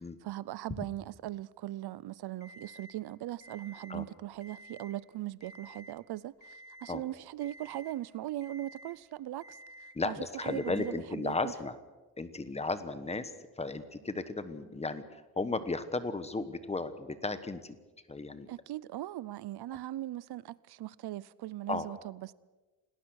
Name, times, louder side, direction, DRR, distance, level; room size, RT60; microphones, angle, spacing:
voice 1, 0.2-11.5 18.5-22.3, right 14 dB, 75° right, 0.7 m, -39 dB
Alarm, 2.4-3.0 3.4-4.0 4.3-5.0 5.4-6.0 6.4-7.0 7.4-8.0 8.4-9.0 9.4-10.0 10.4-11.0, equal, 45° left, 3.6 m, -52 dB
voice 2, 9.9-11.7 12.2-13.3 13.6-17.8 18.1-18.5 21.7-21.9, left 3 dB, 15° left, 1.2 m, -35 dB
28.0 x 18.5 x 6.5 m
wide cardioid pair, 165°, 39 cm